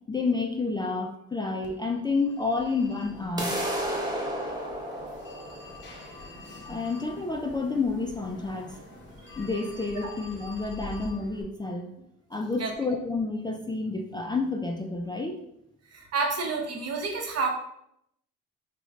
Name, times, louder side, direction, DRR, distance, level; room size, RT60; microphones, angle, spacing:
voice 1, 0.1-3.6 6.7-8.8 9.4-11.9 12.3-15.4, left 3 dB, 15° left, 2 dB, 0.4 m, -29 dB
Telephone, 1.6-11.4, left 2 dB, 40° left, 0.9 m, -46 dB
sound 1, 3.4-9.3, right 1 dB, 15° right, 1.1 m, -34 dB
voice 2, 15.9-17.5, right 4 dB, 55° right, 2 dB, 0.9 m, -29 dB
4.1 x 2.3 x 4.0 m, 0.77 s
cardioid pair, 90°, 30 cm